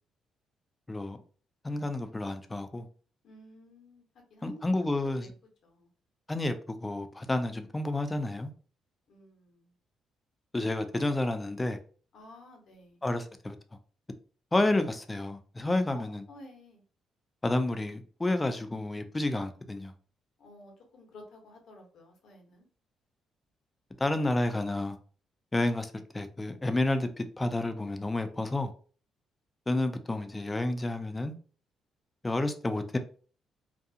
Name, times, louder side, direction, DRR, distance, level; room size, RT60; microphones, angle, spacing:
voice 1, 0.9-1.2 1.6-2.9 4.4-5.2 6.3-8.5 10.5-11.8 13.0-13.6 14.5-16.2 17.4-19.9 24.0-25.0 25.5-28.7 29.7-31.3 32.2-33.0, left 2 dB, 20° left, 0.4 m, -30 dB
voice 2, 3.2-4.0 4.3-5.3 5.6-5.9 9.1-9.7 12.1-13.0 15.9-16.8 20.4-22.7, left 2 dB, 70° left, 0.9 m, -50 dB
2.5 x 2.3 x 2.7 m
cardioid pair, 90°, 0 cm